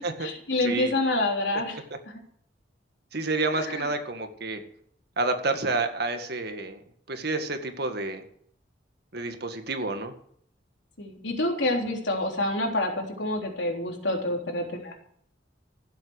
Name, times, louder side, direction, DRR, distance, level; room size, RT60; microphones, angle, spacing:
voice 1, 0.0-1.8 3.5-3.9 11.0-14.9, left 1 dB, 70° left, 1 dB, 3.5 m, -27 dB
voice 2, 0.6-0.9 3.1-4.6 5.2-6.8 7.1-8.2 9.1-10.1, right 3 dB, 60° right, 6 dB, 2.0 m, -29 dB
15.5 x 8.1 x 8.1 m, 0.64 s
head